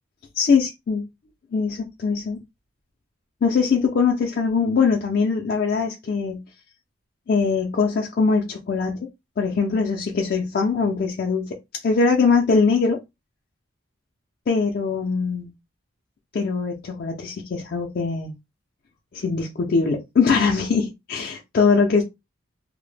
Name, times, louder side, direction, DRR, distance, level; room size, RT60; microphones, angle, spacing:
voice 1, 0.3-1.0 1.5-2.4 3.4-6.4 7.3-9.1 9.4-11.6 11.8-13.0 14.5-15.5 16.3-18.3 19.1-22.0, left 5 dB, 50° left, 0.4 m, -22 dB
2.0 x 2.0 x 3.1 m
head